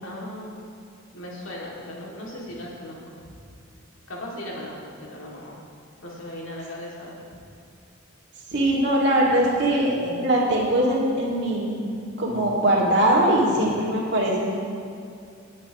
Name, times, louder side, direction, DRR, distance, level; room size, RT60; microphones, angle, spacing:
voice 1, 0.0-0.5 1.1-3.2 4.1-5.6 6.0-7.3, left 1 dB, 75° left, -4 dB, 2.4 m, -37 dB
voice 2, 8.5-11.8 12.2-14.5, right 1 dB, 55° right, -4 dB, 2.1 m, -21 dB
17.0 x 8.3 x 3.0 m, 2.5 s
head